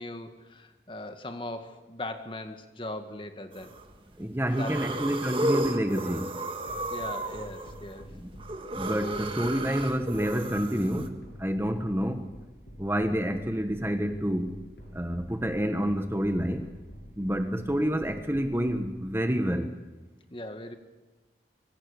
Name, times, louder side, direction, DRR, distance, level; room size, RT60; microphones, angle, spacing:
voice 1, 0.0-3.8 4.5-5.0 6.9-8.2 20.3-20.8, left 1 dB, 30° left, 7 dB, 1.9 m, -39 dB
sound 1, 3.5-3.9 4.4-11.1, right 1 dB, 30° right, 1.7 m, -34 dB
voice 2, 4.2-6.3 8.1-8.3 8.7-12.4 12.8-14.6 14.9-16.7 17.2-19.7, equal, 15° right, 7 dB, 1.3 m, -28 dB
sound 2, 6.7-18.9, equal, 80° left, 6.9 m, -47 dB
26.0 x 23.5 x 6.8 m, 1.2 s
head